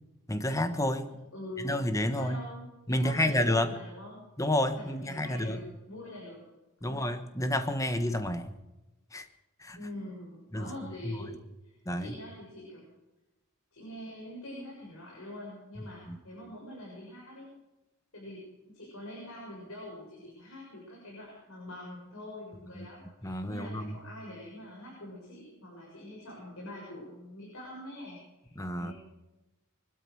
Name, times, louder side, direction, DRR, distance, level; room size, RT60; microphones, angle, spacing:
voice 1, 0.3-1.1 1.6-2.4 2.9-3.7 4.4-5.6 6.8-8.5 9.1-9.3 9.6-9.8 10.5-10.7 11.0-11.2 11.8-12.1 15.8-16.2 22.7-22.9 23.2-24.0 28.5-28.9, left 1 dB, 15° left, 9 dB, 1.3 m, -30 dB
voice 2, 1.1-1.7 2.0-4.2 4.7-6.4 6.8-7.1 9.8-11.4 11.6-12.8 13.7-17.5 18.1-28.9, left 1 dB, 90° left, -4 dB, 6.9 m, -44 dB
23.5 x 12.5 x 4.8 m, 1.0 s
head